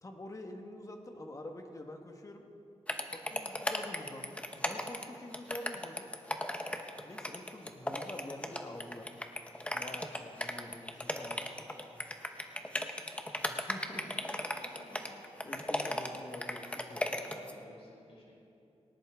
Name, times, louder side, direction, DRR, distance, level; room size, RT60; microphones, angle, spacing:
voice 1, 0.0-2.4 3.1-6.1 7.0-9.1 9.7-11.7 13.4-14.6 15.4-17.1, left 1 dB, 30° left, 4 dB, 1.4 m, -47 dB
sound 1, 2.9-17.5, left 1 dB, 10° left, 0.9 m, -36 dB
voice 2, 13.9-15.2 15.4-15.9 17.0-18.3, left 1 dB, 55° left, -3 dB, 4.5 m, -57 dB
18.5 x 18.5 x 3.6 m, 2.7 s
wide cardioid pair, 135°, 11 cm